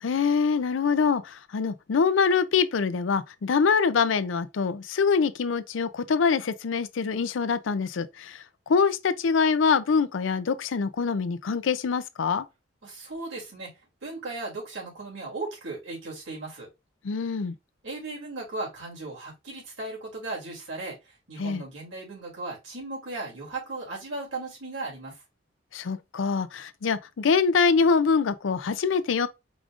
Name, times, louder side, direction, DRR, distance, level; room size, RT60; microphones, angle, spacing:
voice 1, 0.0-12.5 17.0-17.6 21.4-21.6 25.7-29.3, left 5 dB, 80° left, 0.5 m, -24 dB
voice 2, 12.8-13.7 14.0-16.7 17.8-25.2, right 2 dB, 85° right, 2.8 m, -37 dB
4.9 x 2.5 x 3.5 m
head